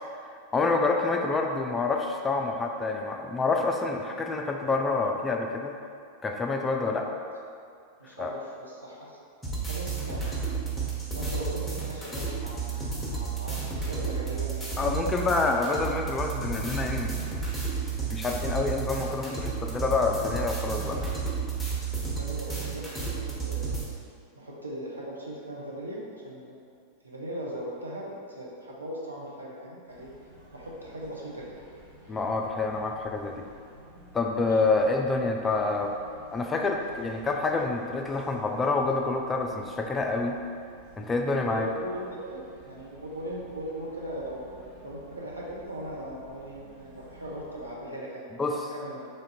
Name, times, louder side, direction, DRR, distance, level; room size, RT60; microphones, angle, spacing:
voice 1, 0.5-5.8 6.2-7.1 8.2-8.3 14.8-17.2 18.1-21.2 32.1-33.5 34.1-36.0 36.3-40.4 41.0-41.7 48.4-48.7, left 3 dB, 15° left, 2 dB, 0.3 m, -27 dB
voice 2, 6.8-7.1 8.0-9.2 9.7-10.8 11.1-14.6 22.1-23.7 24.4-26.5 27.0-30.1 30.5-31.5 34.5-34.6 41.5-42.4 42.6-44.5 44.8-49.1, equal, 80° right, -4 dB, 0.7 m, -39 dB
sound 1, 9.4-23.8, right 5 dB, ahead, 0.9 m, -32 dB
sound 2, 29.9-47.8, right 1 dB, 60° right, 1.2 m, -53 dB
3.2 x 2.5 x 4.1 m, 2.3 s
figure-of-eight pair, 90°, 0 cm